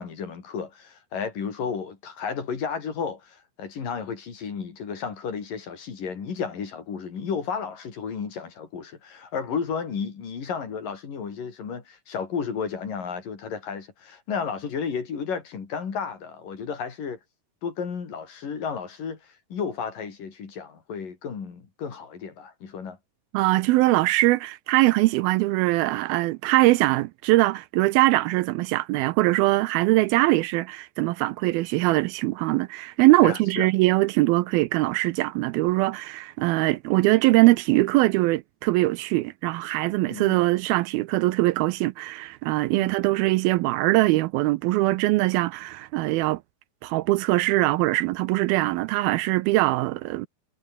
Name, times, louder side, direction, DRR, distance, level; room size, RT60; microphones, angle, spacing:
voice 1, 0.0-17.2 17.6-23.0 33.2-33.7 40.1-40.4 42.8-42.9, left 6 dB, 60° left, 5.3 m, -33 dB
voice 2, 23.3-46.4 46.8-50.3, right 19 dB, 85° right, 2.4 m, -22 dB
omnidirectional pair, 4.5 m